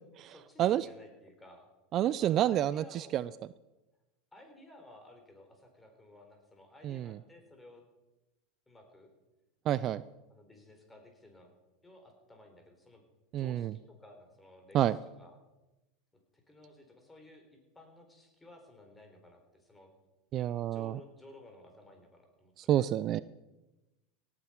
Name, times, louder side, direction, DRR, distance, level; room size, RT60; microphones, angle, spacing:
voice 1, 0.2-1.7 2.0-3.2 4.3-7.8 8.7-9.1 10.3-11.5 11.8-13.0 13.4-15.4 16.3-19.9 20.7-22.7, left 1 dB, 10° left, 4 dB, 4.0 m, -56 dB
voice 2, 1.9-3.3 6.8-7.2 9.7-10.0 13.3-13.7 14.7-15.0 20.3-21.0 22.6-23.2, right 12 dB, 45° right, 18 dB, 0.4 m, -29 dB
17.5 x 8.7 x 5.8 m, 1.0 s
hypercardioid pair, 90°, 0 cm